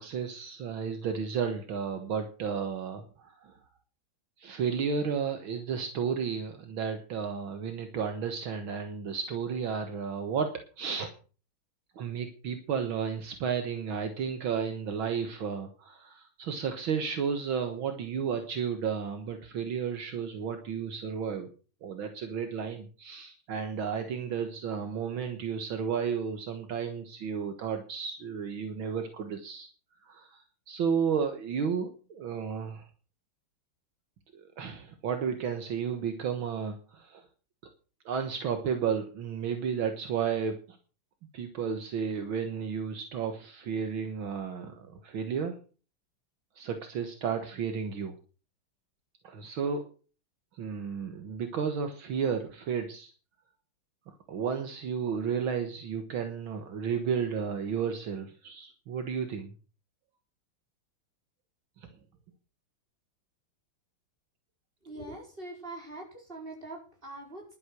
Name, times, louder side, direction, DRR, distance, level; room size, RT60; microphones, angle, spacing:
voice 1, 0.0-3.6 4.4-11.1 12.0-21.5 21.8-29.7 30.1-32.9 34.3-37.2 38.1-40.8 41.3-45.6 46.6-48.2 49.2-49.9 50.6-53.1 54.3-59.5, right 6 dB, 70° right, 7 dB, 2.1 m, -33 dB
voice 2, 64.8-67.6, right 2 dB, 25° right, 0 dB, 5.1 m, -43 dB
11.5 x 9.5 x 6.3 m, 0.37 s
omnidirectional pair, 2.4 m